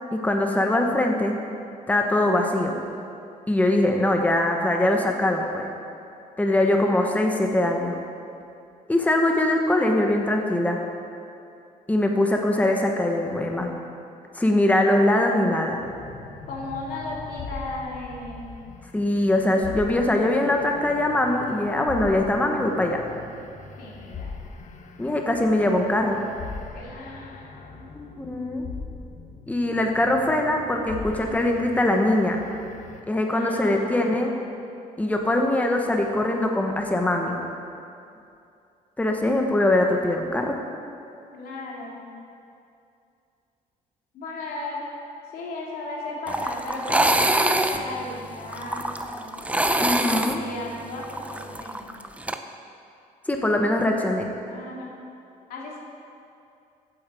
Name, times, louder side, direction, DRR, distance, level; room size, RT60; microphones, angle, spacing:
voice 1, 0.1-1.4 1.9-2.8 3.5-5.7 6.4-8.0 8.9-10.8 11.9-13.7 14.3-15.8 18.9-23.0 25.0-26.2 27.9-28.7 29.5-32.4 33.1-34.3 35.0-37.4 39.0-40.6 49.8-50.4 53.3-54.3, left 1 dB, 10° left, 2 dB, 1.1 m, -22 dB
sound 1, 15.7-33.0, left 5 dB, 55° left, 1.2 m, -41 dB
voice 2, 16.4-18.5 23.2-23.3 23.8-24.4 26.7-27.9 33.3-34.4 41.3-42.0 44.1-44.8 45.3-51.9 54.4-54.9 55.5-55.8, left 2 dB, 85° left, -3 dB, 2.8 m, -36 dB
sound 2, 46.3-52.4, right 1 dB, 10° right, 0.7 m, -25 dB
14.5 x 8.9 x 4.9 m, 2.6 s
cardioid pair, 100°, 15 cm